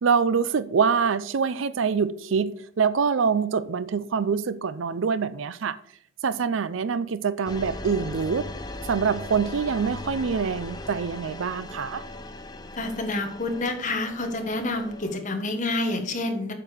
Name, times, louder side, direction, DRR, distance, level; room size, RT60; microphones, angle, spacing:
voice 1, 0.0-5.8 6.2-8.5 8.8-12.0, right 6 dB, 65° right, 0.5 m, -25 dB
sound 1, 7.5-15.2, left 2 dB, 20° left, 0.6 m, -38 dB
voice 2, 12.8-16.5, left 2 dB, 35° left, 1.4 m, -28 dB
8.6 x 6.5 x 5.0 m
head